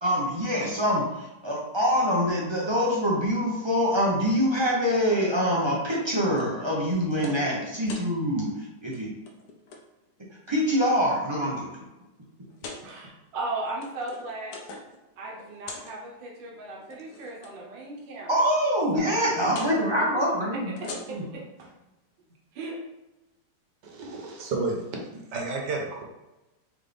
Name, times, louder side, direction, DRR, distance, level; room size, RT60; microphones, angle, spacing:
voice 1, 0.0-8.5 8.8-9.1 10.5-11.8 18.3-20.7, equal, 35° right, -4 dB, 0.4 m, -25 dB
sound 1, 5.9-6.5 6.9-7.5 7.7-8.1 8.8-9.0 9.3-9.8 10.5-11.0 11.6-11.7 12.5-12.8 13.6-15.0 15.3-15.9 16.8-17.5 19.5-19.8 20.6-21.4, left 3 dB, 70° left, 1.1 m, -42 dB
voice 2, 12.8-14.6 15.2-18.5 18.9-19.6 20.0-21.8 22.5-22.8, right 2 dB, 90° right, -2 dB, 1.6 m, -37 dB
voice 3, 23.8-24.8 25.1-26.0, right 3 dB, 70° right, 0 dB, 1.5 m, -31 dB
4.1 x 3.5 x 3.3 m, 0.99 s
omnidirectional pair, 1.9 m